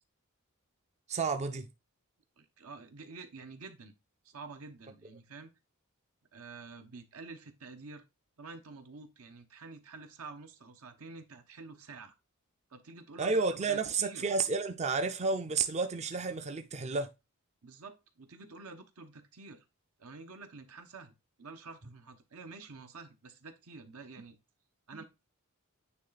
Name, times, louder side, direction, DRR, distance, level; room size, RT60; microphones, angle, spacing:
voice 1, 1.1-1.7 13.2-17.1, right 4 dB, 30° right, 0.5 m, -31 dB
voice 2, 2.4-3.9 4.2-5.5 6.3-8.0 8.4-12.1 12.7-14.3 17.6-19.6 20.0-21.1 21.4-24.4 24.9-25.0, right 4 dB, 80° right, 1.1 m, -49 dB
9.4 x 3.2 x 4.1 m
head